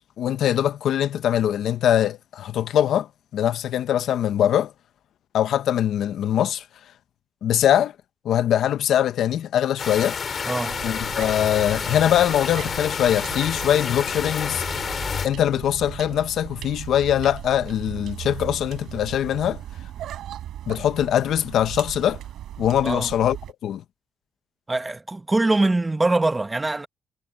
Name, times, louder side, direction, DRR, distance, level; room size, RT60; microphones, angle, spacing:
voice 1, 0.2-3.1 3.3-4.7 5.3-6.6 7.4-7.9 8.2-10.2 10.8-14.6 15.2-19.6 20.7-22.2 22.6-23.4 23.6-23.8, left 10 dB, 75° left, 1.0 m, -22 dB
sound 1, 9.8-15.3, left 6 dB, 45° left, 5.2 m, -29 dB
voice 2, 10.5-10.9 22.8-23.1 24.7-26.9, right 2 dB, 20° right, 1.5 m, -23 dB
sound 2, 10.7-23.5, right 12 dB, 80° right, 4.4 m, -38 dB
cardioid pair, 90°, 0 cm